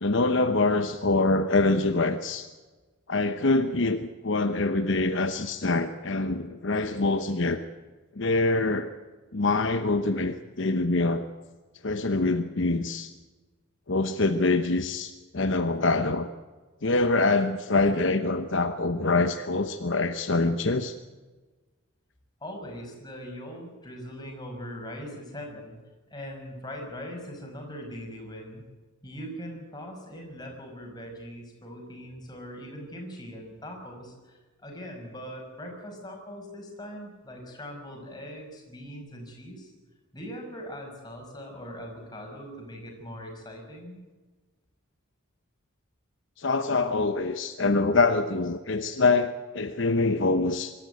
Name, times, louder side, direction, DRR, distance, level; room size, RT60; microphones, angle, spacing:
voice 1, 0.0-2.5 3.1-7.6 8.2-8.9 9.3-11.3 11.8-13.1 13.9-16.3 16.8-20.9 46.4-50.7, left 3 dB, 60° left, 8 dB, 0.9 m, -25 dB
voice 2, 22.4-25.8 26.1-28.6 29.0-39.7 40.1-44.0, equal, 20° left, 1 dB, 5.8 m, -41 dB
24.5 x 13.5 x 9.2 m, 1.3 s
head